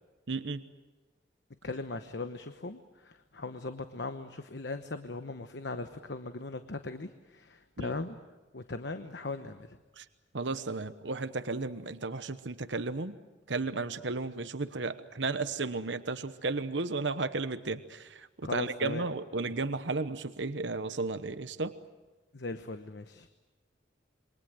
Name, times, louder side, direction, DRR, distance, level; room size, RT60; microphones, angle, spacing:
voice 1, 0.3-0.7 7.8-7.9 10.0-10.1 10.3-13.2 13.5-21.8, right 3 dB, 75° right, 11 dB, 1.1 m, -34 dB
voice 2, 1.6-8.2 8.5-9.8 18.4-19.1 22.3-23.3, left 3 dB, 65° left, 9 dB, 1.1 m, -39 dB
27.5 x 23.5 x 7.8 m, 1.2 s
head